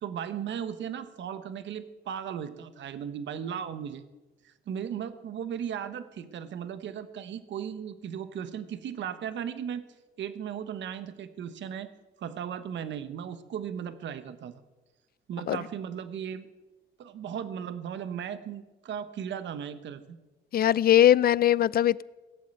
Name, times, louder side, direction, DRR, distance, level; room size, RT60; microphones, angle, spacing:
voice 1, 0.0-4.0 4.4-9.8 10.2-11.9 12.2-14.5 15.3-16.5 17.0-20.2, right 8 dB, 65° right, 1.1 m, -36 dB
voice 2, 20.5-22.0, left 11 dB, 50° left, 0.5 m, -20 dB
17.5 x 7.5 x 9.0 m
cardioid pair, 90°, 20 cm